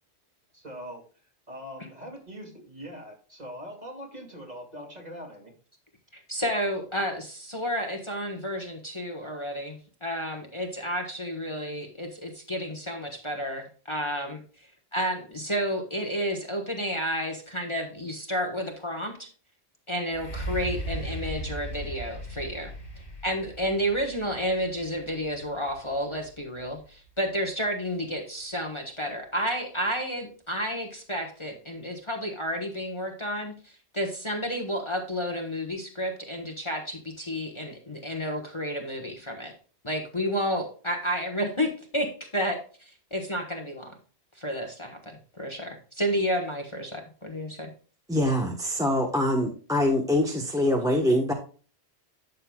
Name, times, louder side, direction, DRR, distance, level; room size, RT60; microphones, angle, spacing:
voice 1, 0.5-1.0 1.5-5.5, equal, 35° right, 0 dB, 2.7 m, -42 dB
voice 2, 6.3-14.4 14.9-19.3 19.9-22.7 23.2-39.5 39.8-44.0 44.3-47.7, equal, 25° left, 3 dB, 1.3 m, -31 dB
sound 1, 20.1-27.8 28.5-28.6, right 1 dB, 80° left, 3.0 m, -38 dB
voice 3, 48.1-51.3, left 1 dB, 5° right, 1 dB, 1.0 m, -24 dB
11.5 x 6.6 x 2.3 m, 0.39 s
omnidirectional pair, 1.1 m